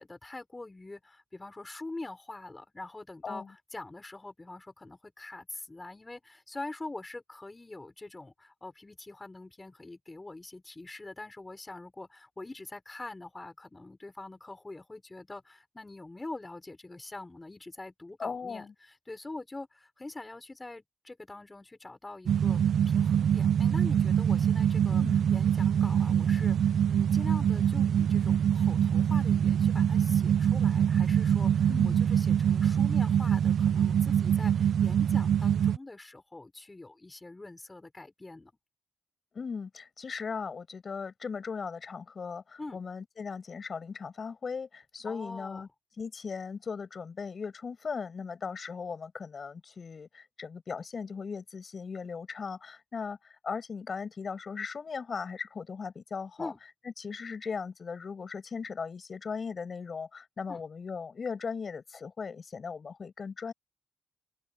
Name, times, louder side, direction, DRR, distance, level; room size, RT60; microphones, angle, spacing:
voice 1, 0.0-38.5 42.6-42.8 45.0-45.7 56.4-56.6 60.5-60.6, left 2 dB, 20° left, 5.9 m, -44 dB
voice 2, 18.2-18.7 24.9-25.2 31.7-32.1 39.3-45.7 46.0-56.5 56.8-63.5, left 5 dB, 45° left, 7.6 m, -38 dB
sound 1, 22.3-35.8, right 9 dB, 70° right, 0.7 m, -24 dB
open air
cardioid pair, 80°, 0 cm